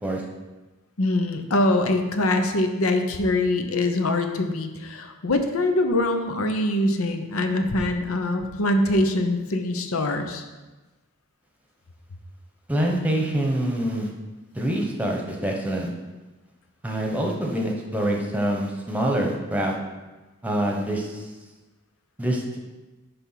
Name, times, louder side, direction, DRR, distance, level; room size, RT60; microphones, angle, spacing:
voice 1, 1.0-10.4, left 1 dB, 80° left, 6 dB, 0.8 m, -23 dB
voice 2, 12.7-14.1 14.5-15.9 16.8-19.7 20.4-21.2 22.2-22.6, right 1 dB, 5° right, 0 dB, 1.0 m, -25 dB
10.5 x 3.5 x 5.8 m, 1.2 s
head